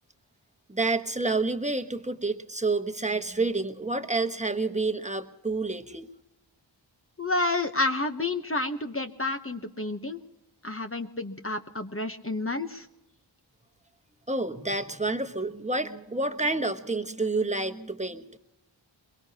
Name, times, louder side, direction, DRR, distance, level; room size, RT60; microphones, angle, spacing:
voice 1, 0.7-6.1 14.3-18.2, right 3 dB, 15° right, 7 dB, 1.2 m, -29 dB
voice 2, 7.2-10.2 10.6-12.9, left 2 dB, 30° left, 6 dB, 1.0 m, -30 dB
22.5 x 22.0 x 2.9 m, 0.93 s
wide cardioid pair, 55°, 46 cm